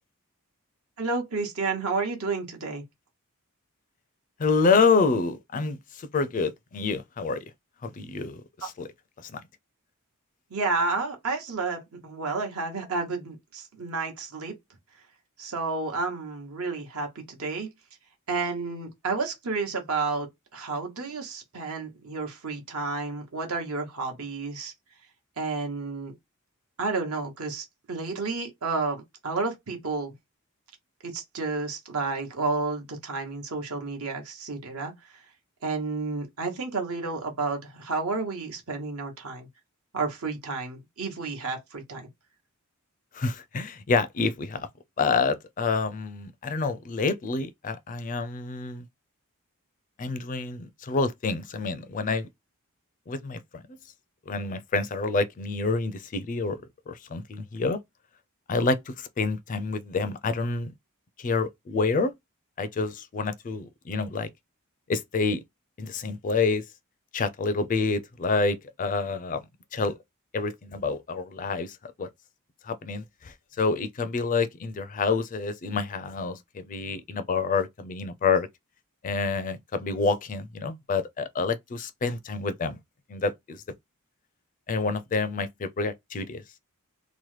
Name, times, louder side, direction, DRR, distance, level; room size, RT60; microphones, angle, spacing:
voice 1, 1.0-2.8 10.5-14.5 15.4-17.7 18.3-20.3 20.5-24.7 25.4-26.1 26.8-30.1 31.0-35.1 35.6-39.5 39.9-42.1, right 3 dB, 75° right, 1.0 m, -31 dB
voice 2, 4.4-7.4 7.8-8.9 9.2-9.4 43.1-44.7 45.0-48.8 50.0-52.3 53.1-53.6 54.3-57.8 58.5-60.7 61.2-62.1 62.6-64.3 64.9-65.4 65.8-66.6 67.1-69.4 69.7-70.0 70.3-72.1 72.6-78.5 79.0-82.8 83.1-83.6 84.7-86.4, left 4 dB, 35° left, 0.4 m, -28 dB
2.9 x 2.1 x 3.1 m
head